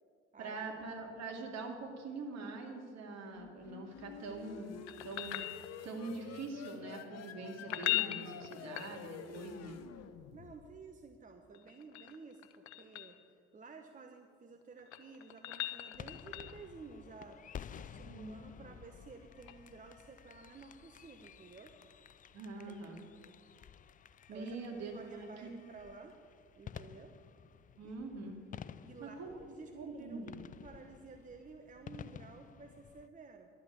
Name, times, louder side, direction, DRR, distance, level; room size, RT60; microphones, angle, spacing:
voice 1, 0.4-5.4 5.8-9.8 18.0-18.7 22.3-23.0 24.3-25.5 27.8-28.3 29.0-29.3 29.7-30.4, right 3 dB, 50° right, 2 dB, 2.6 m, -44 dB
sound 1, 3.3-11.0, left 7 dB, 50° left, 1.0 m, -50 dB
sound 2, 4.9-6.1 7.6-9.4 11.5-13.2 14.6-16.7 19.5-19.6, left 16 dB, 75° left, 0.8 m, -39 dB
voice 2, 10.3-13.2 13.5-17.4 17.7-21.8 22.6-22.9 24.3-24.6 24.9-26.1 26.6-27.1 27.8-28.0 28.8-29.1 29.5-30.2 30.6-33.5, right 4 dB, 25° right, 6 dB, 1.0 m, -53 dB
sound 3, 16.0-33.1, left 8 dB, 25° left, 0.4 m, -53 dB
11.5 x 8.2 x 8.5 m, 2.2 s
hypercardioid pair, 60°, 34 cm